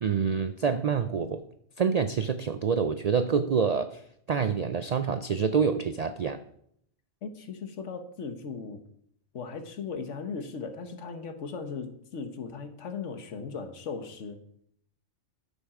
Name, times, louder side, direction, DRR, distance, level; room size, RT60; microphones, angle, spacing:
voice 1, 0.0-1.4 1.8-4.0 4.3-6.4, right 6 dB, 75° right, 10 dB, 0.3 m, -27 dB
voice 2, 7.2-8.8 9.3-14.4, left 5 dB, 70° left, 7 dB, 1.4 m, -37 dB
10.5 x 7.2 x 4.9 m, 0.71 s
omnidirectional pair, 1.3 m